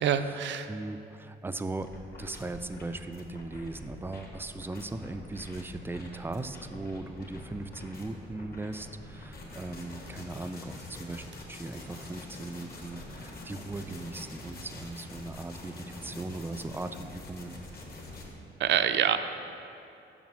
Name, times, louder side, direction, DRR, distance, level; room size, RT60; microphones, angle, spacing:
voice 1, 0.0-0.7 18.6-19.2, right 9 dB, 65° right, 9 dB, 0.5 m, -26 dB
voice 2, 0.7-1.9 2.2-17.6, right 2 dB, 10° right, 10 dB, 0.3 m, -38 dB
sound 1, 1.8-18.3, left 2 dB, 50° left, 1.4 m, -45 dB
7.3 x 5.2 x 6.1 m, 2.7 s
cardioid pair, 90°, 20 cm